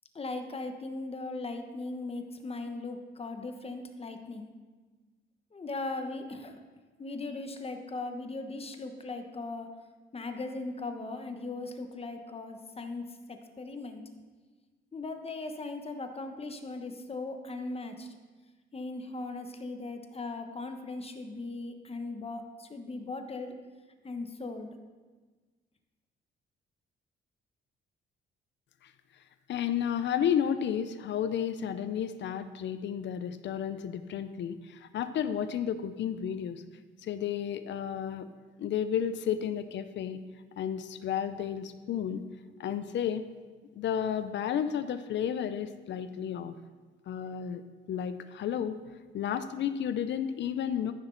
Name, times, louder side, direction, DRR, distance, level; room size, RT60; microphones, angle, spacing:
voice 1, 0.1-4.5 5.5-6.5 7.0-9.7 10.1-14.0 14.9-18.1 18.7-23.6 24.0-24.7, left 3 dB, 30° left, 6 dB, 1.1 m, -38 dB
voice 2, 29.5-36.6 37.0-38.3 38.6-40.2 40.6-42.2 42.6-43.2 43.7-46.5 47.1-47.6 47.9-48.8 49.1-50.9, left 9 dB, 65° left, 11 dB, 0.6 m, -32 dB
14.0 x 6.2 x 3.9 m, 1.4 s
cardioid pair, 90°, 20 cm